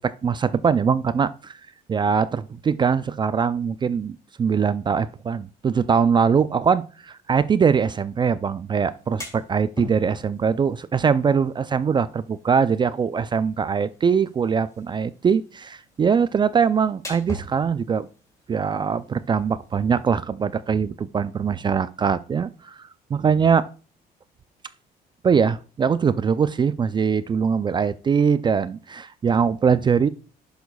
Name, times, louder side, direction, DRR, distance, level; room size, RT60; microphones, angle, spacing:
voice 1, 0.0-1.6 1.9-18.1 18.5-23.7 25.2-30.1, right 6 dB, 25° right, 0.4 m, -22 dB
sound 1, 8.8-20.1, equal, 20° left, 2.3 m, -44 dB
10.0 x 7.1 x 2.3 m
cardioid pair, 110°, 17 cm